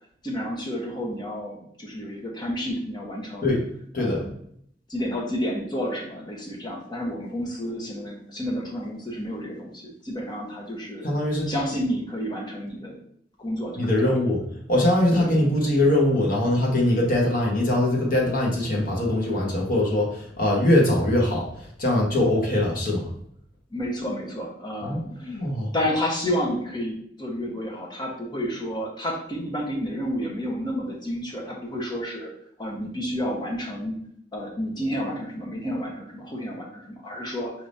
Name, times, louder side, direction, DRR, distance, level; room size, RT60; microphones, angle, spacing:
voice 1, 0.2-3.5 4.0-4.3 4.9-11.1 11.5-12.9 13.4-14.0 15.0-15.7 23.7-25.4 25.7-32.3 32.6-33.9 34.3-37.5, equal, 25° left, -2 dB, 1.0 m, -30 dB
voice 2, 11.0-11.5 13.8-14.4 14.7-23.1 24.8-25.7, left 1 dB, 50° left, -2 dB, 1.3 m, -22 dB
4.7 x 3.5 x 2.7 m, 0.67 s
head